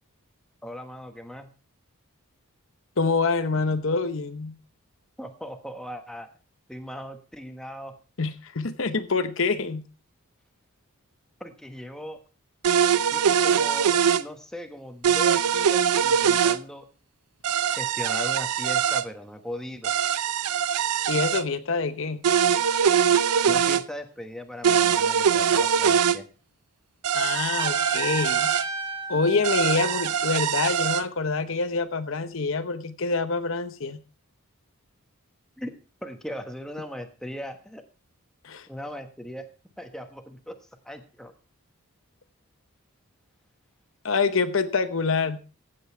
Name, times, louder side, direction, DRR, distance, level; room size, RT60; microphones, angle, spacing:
voice 1, 0.6-1.5 5.2-6.3 6.7-7.9 11.4-12.2 13.1-16.9 17.8-19.9 23.5-26.2 35.6-35.7 36.0-37.8 38.7-39.5 39.8-40.6 40.8-41.3, equal, 5° left, 6 dB, 1.1 m, -38 dB
voice 2, 3.0-4.5 8.2-9.8 21.1-22.2 27.1-28.5 29.1-34.0 38.4-38.7 44.0-45.4, left 4 dB, 60° left, 10 dB, 0.8 m, -26 dB
sound 1, 12.6-14.2 15.0-16.6 17.4-19.0 19.8-21.4 22.2-23.8 24.6-26.2 27.0-28.6 29.4-31.0, right 8 dB, 90° right, 0.6 m, -22 dB
Trumpet, 27.6-30.4, right 3 dB, 20° right, 1.4 m, -34 dB
15.5 x 8.0 x 4.5 m, 0.36 s
head